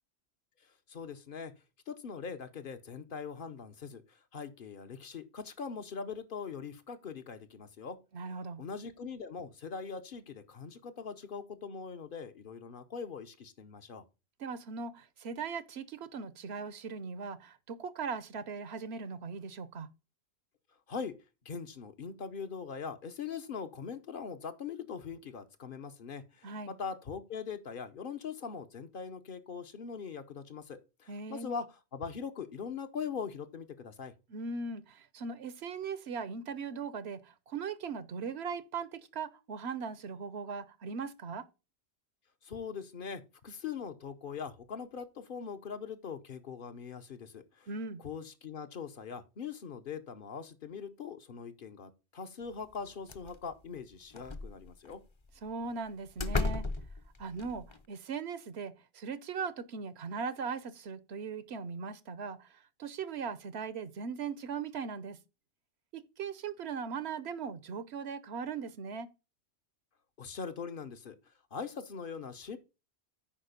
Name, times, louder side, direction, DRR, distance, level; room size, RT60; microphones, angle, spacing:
voice 1, 0.9-1.5 1.9-8.0 8.6-14.0 20.9-21.2 21.4-34.1 42.4-47.7 48.0-55.0 70.2-71.2 71.5-72.6, left 6 dB, 55° left, 1.0 m, -41 dB
voice 2, 8.1-8.6 14.4-19.9 26.4-26.7 31.1-31.5 34.3-41.5 47.7-48.0 55.4-56.7 57.2-65.2 65.9-69.1, right 5 dB, 80° right, 1.0 m, -39 dB
sound 1, 52.7-52.8 53.1-53.5 54.1-55.0 55.7-55.8 56.2-57.8, left 3 dB, 30° left, 0.7 m, -34 dB
8.8 x 5.0 x 5.1 m
omnidirectional pair, 1.1 m